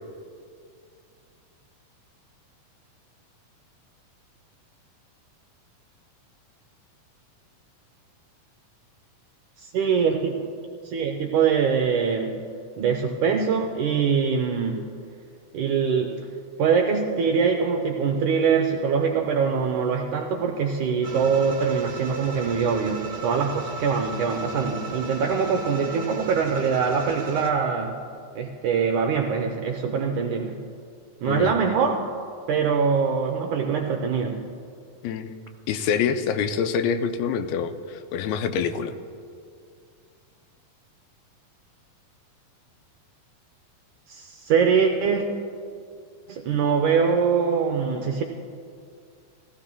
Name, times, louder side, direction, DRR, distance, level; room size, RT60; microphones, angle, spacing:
voice 1, 9.6-10.5 10.8-12.3 12.8-14.8 15.5-16.2 16.6-28.0 28.4-30.6 31.2-32.1 32.5-34.4 44.1-45.3 46.3-48.2, right 6 dB, 80° right, 2 dB, 1.8 m, -23 dB
sound 1, 21.0-27.5, right 3 dB, 60° right, 0.8 m, -36 dB
voice 2, 31.3-31.6 35.0-35.3 35.7-38.9, left 7 dB, 90° left, 9 dB, 2.5 m, -26 dB
18.5 x 15.0 x 2.2 m, 2.4 s
omnidirectional pair, 4.2 m